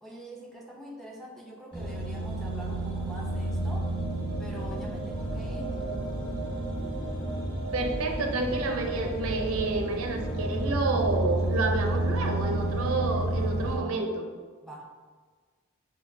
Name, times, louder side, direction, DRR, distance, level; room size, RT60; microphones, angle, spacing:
voice 1, 0.0-3.9 4.4-5.8 14.6-14.9, right 1 dB, ahead, -3 dB, 0.5 m, -44 dB
sound 1, 1.7-13.8, right 1 dB, 20° left, 0.9 m, -31 dB
voice 2, 7.7-14.3, right 3 dB, 70° right, 4 dB, 0.5 m, -29 dB
6.8 x 2.3 x 2.6 m, 1.5 s
head